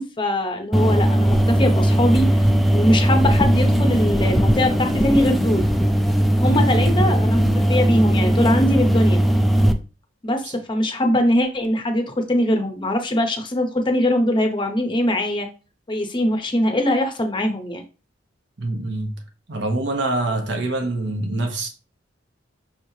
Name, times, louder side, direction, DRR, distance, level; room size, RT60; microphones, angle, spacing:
voice 1, 0.0-2.5 2.7-5.6 6.4-9.2 10.2-15.5 15.9-17.8, left 1 dB, 25° left, 0.7 m, -22 dB
sound 1, 0.7-9.7, right 1 dB, ahead, 0.3 m, -18 dB
voice 2, 6.4-6.9 10.4-10.6 18.6-19.2 19.5-21.7, right 2 dB, 65° right, 0.9 m, -25 dB
5.8 x 3.1 x 2.7 m
head